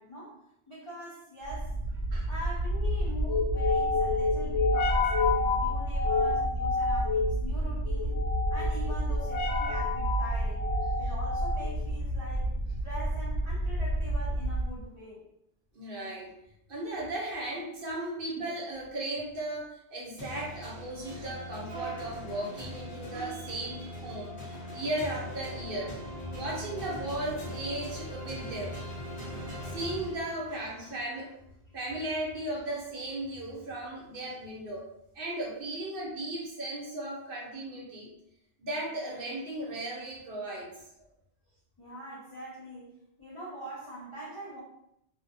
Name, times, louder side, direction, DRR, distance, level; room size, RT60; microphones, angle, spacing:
voice 1, 0.0-1.8 2.2-8.2 8.5-10.6 11.0-12.5 12.8-15.3 41.8-44.6, equal, 40° left, -8 dB, 0.4 m, -43 dB
sound 1, 1.5-14.8, left 1 dB, 75° left, 1.0 m, -28 dB
voice 2, 15.7-16.3 16.7-25.9 26.3-28.8 29.6-31.4 31.7-34.9 35.1-38.1 38.6-40.8, right 1 dB, 55° right, -3 dB, 0.8 m, -36 dB
sound 2, 20.2-30.8, left 1 dB, 20° left, 0.8 m, -40 dB
2.5 x 2.1 x 2.5 m, 0.78 s
omnidirectional pair, 1.2 m